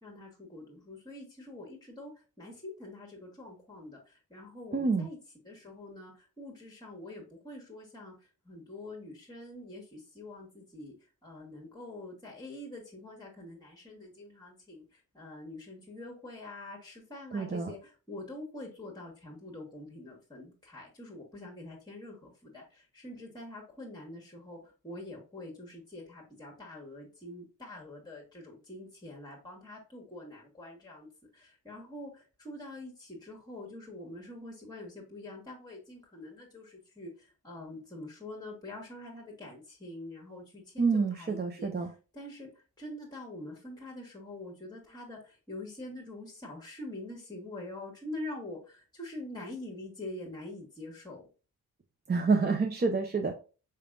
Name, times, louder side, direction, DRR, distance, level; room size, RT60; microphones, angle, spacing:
voice 1, 0.0-5.2 5.4-10.9 11.2-31.1 31.3-51.3, left 1 dB, 10° left, -1 dB, 1.5 m, -45 dB
voice 2, 4.7-5.1 17.3-17.7 40.8-41.9 52.1-53.3, right 4 dB, 25° right, 4 dB, 0.6 m, -28 dB
4.3 x 3.3 x 2.4 m, 0.34 s
supercardioid pair, 45°, 39 cm